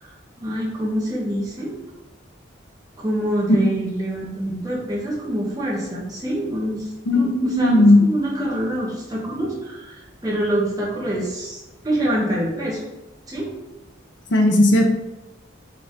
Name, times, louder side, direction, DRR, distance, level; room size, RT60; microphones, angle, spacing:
voice 1, 0.0-1.7 3.0-12.8 13.3-13.5, right 1 dB, 20° right, -5 dB, 1.0 m, -26 dB
voice 2, 7.1-8.0 14.3-14.8, left 1 dB, 80° left, 2 dB, 0.7 m, -15 dB
4.6 x 2.6 x 3.6 m, 1.0 s
head